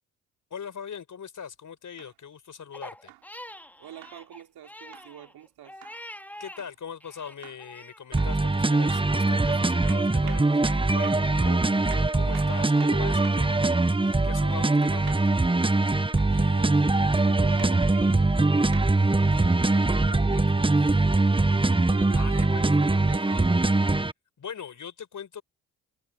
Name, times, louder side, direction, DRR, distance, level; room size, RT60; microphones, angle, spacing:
voice 1, 0.5-3.1 6.4-15.4 22.1-22.7 24.4-25.4, left 7 dB, 45° left, 5.2 m, -41 dB
sound 1, 2.0-2.2 3.1-3.3 4.0-4.2 4.9-5.1 5.8-6.0 6.6-6.8 7.4-7.7 8.2-8.4 8.9-9.1 9.5-13.5 15.1-15.3 16.2-16.4 17.6-17.8 18.7-18.9 19.8-19.9, right 33 dB, 80° right, 4.8 m, -48 dB
Crying sobbing, 2.7-6.6 7.0-8.0, left 1 dB, 5° left, 2.6 m, -45 dB
voice 2, 3.8-5.8 12.5-12.6 16.3-18.8 19.2-21.1 21.9-23.6, right 11 dB, 60° right, 4.8 m, -47 dB
sound 2, 8.1-24.1, right 2 dB, 10° right, 1.4 m, -22 dB
hypercardioid pair, 45°, 41 cm